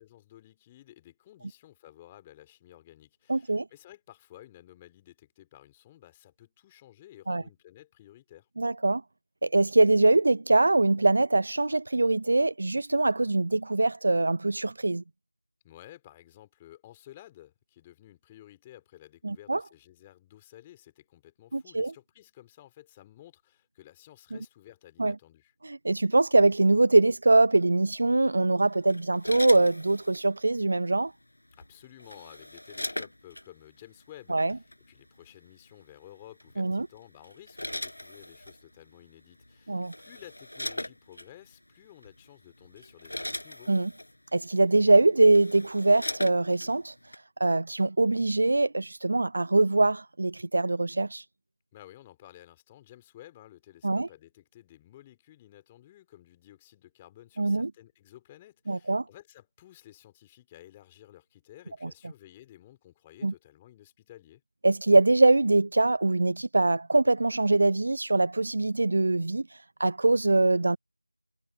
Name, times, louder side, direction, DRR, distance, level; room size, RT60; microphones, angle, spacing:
voice 1, 0.0-8.5 15.6-25.5 31.5-43.7 51.7-64.4, left 14 dB, 10° left, 3.5 m, -53 dB
voice 2, 3.3-3.7 7.3-7.4 8.6-9.0 9.4-15.0 19.2-19.6 21.5-21.9 25.0-25.1 25.6-31.1 34.3-34.5 36.6-36.9 39.7-39.9 43.7-43.9 44.3-46.9 47.4-51.2 53.8-54.1 57.4-57.7 58.7-59.0 61.8-61.9 63.2-63.3 64.6-70.8, right 2 dB, 40° right, 0.4 m, -23 dB
sound 1, 28.9-30.3 31.6-33.5 34.5-34.7 36.4-36.7 37.2-38.6 39.4-39.5 39.8-41.3 42.0-42.2 42.6-44.1 44.8-44.9 45.2-46.7 47.1-47.2, left 1 dB, 70° left, 7.2 m, -39 dB
figure-of-eight pair, 170°, 0 cm